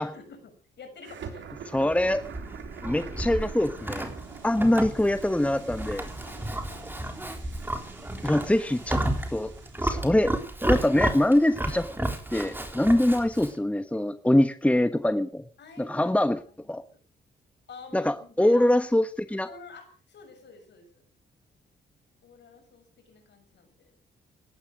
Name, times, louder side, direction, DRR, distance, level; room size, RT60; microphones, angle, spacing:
voice 1, 0.0-1.6 4.4-4.7 6.3-6.9 15.6-16.1 16.5-17.0 17.7-18.7 19.3-21.0 22.2-23.9, left 4 dB, 65° left, 7 dB, 6.5 m, -49 dB
sound 1, 1.0-10.1, right 7 dB, 75° right, 3.4 m, -45 dB
voice 2, 1.7-2.2 2.8-4.1 4.4-6.1 8.2-9.0 9.3-9.5 9.8-10.3 10.7-15.4 15.8-16.4 16.7-16.8 17.9-19.5, left 1 dB, 5° left, 11 dB, 1.2 m, -24 dB
Livestock farm animals working animals, 1.9-13.6, right 1 dB, 10° right, 3.6 m, -32 dB
17.5 x 11.5 x 6.3 m, 0.42 s
cardioid pair, 65°, 19 cm